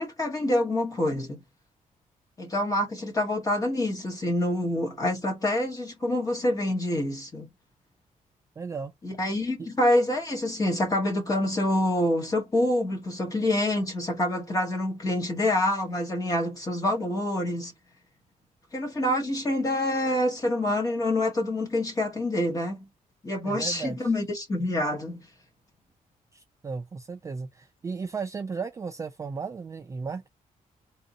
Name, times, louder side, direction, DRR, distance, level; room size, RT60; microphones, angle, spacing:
voice 1, 0.0-1.4 2.4-7.5 9.0-17.7 18.7-22.9 23.2-25.2, left 1 dB, 25° left, 1.2 m, -26 dB
voice 2, 8.6-8.9 9.6-9.7 23.4-24.1 26.3-30.3, right 5 dB, 20° right, 0.3 m, -35 dB
3.6 x 2.6 x 4.1 m
wide cardioid pair, 175°, 15 cm